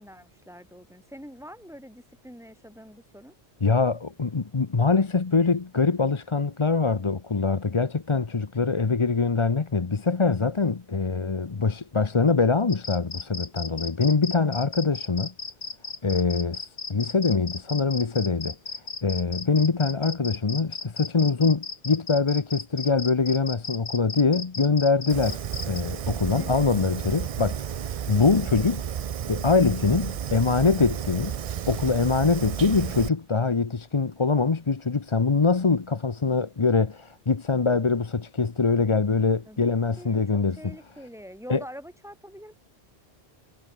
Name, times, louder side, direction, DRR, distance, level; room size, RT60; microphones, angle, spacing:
voice 1, 0.0-3.4 26.4-26.7 39.5-40.2 40.6-42.6, equal, ahead, 6.9 m, -44 dB
voice 2, 3.6-15.3 16.0-18.5 19.0-28.8 29.3-31.4 31.7-40.7 41.5-41.6, left 4 dB, 30° left, 0.8 m, -24 dB
sound 1, 12.7-25.8, left 4 dB, 65° left, 2.1 m, -36 dB
Fire, 25.1-33.1, right 9 dB, 60° right, 0.3 m, -32 dB
omnidirectional pair, 1.2 m